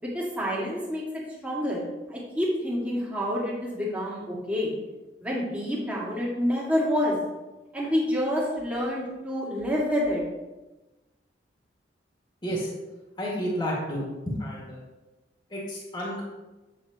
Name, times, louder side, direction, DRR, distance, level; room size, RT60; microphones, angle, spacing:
voice 1, 0.0-1.8 2.1-4.7 5.2-7.2 7.7-10.2, equal, 10° right, -6 dB, 1.9 m, -28 dB
voice 2, 13.2-14.8 15.5-16.2, equal, 25° left, -5 dB, 2.0 m, -31 dB
8.9 x 6.4 x 2.9 m, 1.1 s
head